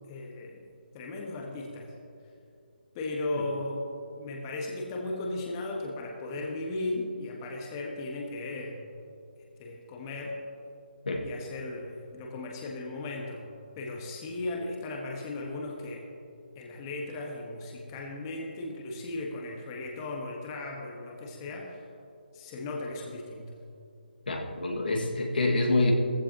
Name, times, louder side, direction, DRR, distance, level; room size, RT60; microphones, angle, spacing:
voice 1, 0.1-0.7 0.9-1.9 2.9-3.8 4.2-8.8 9.6-10.3 11.2-13.5 13.8-16.0 16.5-21.9 22.3-23.5, left 2 dB, 25° left, 0 dB, 1.5 m, -36 dB
voice 2, 24.3-25.9, left 2 dB, 65° left, 1 dB, 2.0 m, -26 dB
16.5 x 15.5 x 3.0 m, 2.6 s
figure-of-eight pair, 145°, 5 cm